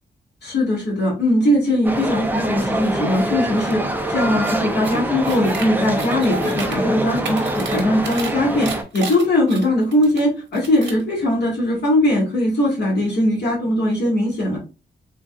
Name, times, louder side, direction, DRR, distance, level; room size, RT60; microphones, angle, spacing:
voice 1, 0.4-14.6, left 1 dB, 65° left, -3 dB, 1.8 m, -20 dB
sound 1, 1.8-8.8, right 1 dB, 10° right, 0.5 m, -24 dB
sound 2, 4.4-4.6 4.8-5.7 6.0-6.8 7.1-8.3 8.6-10.2 10.5-11.0, right 4 dB, 80° right, 0.9 m, -32 dB
3.8 x 2.5 x 2.3 m, 0.31 s
cardioid pair, 90°, 19 cm